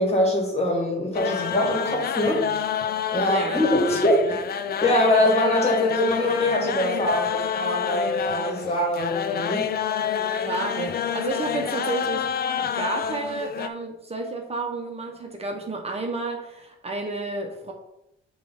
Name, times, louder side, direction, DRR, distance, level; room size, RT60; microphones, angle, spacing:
voice 1, 0.0-2.5 3.1-4.5 4.8-9.7, left 1 dB, 30° left, 0 dB, 2.3 m, -23 dB
sound 1, 1.1-13.7, left 8 dB, 50° left, 0.5 m, -28 dB
voice 2, 3.3-3.6 10.3-12.3 12.6-17.7, right 3 dB, 30° right, 2 dB, 1.0 m, -31 dB
6.8 x 3.2 x 5.8 m, 0.87 s
cardioid pair, 90°, 20 cm